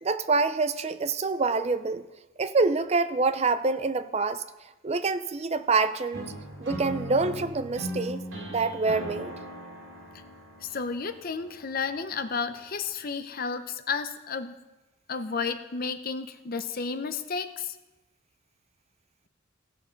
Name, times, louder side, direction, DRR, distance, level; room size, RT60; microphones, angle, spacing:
voice 1, 0.0-2.0 2.4-4.4 4.8-6.3 6.6-8.2 8.5-9.3, right 3 dB, 30° right, 0.5 m, -26 dB
sound 1, 6.1-12.1, equal, 65° right, 2.4 m, -39 dB
voice 2, 10.6-14.5 15.1-17.8, left 5 dB, 50° left, 0.7 m, -32 dB
15.5 x 6.7 x 5.2 m
head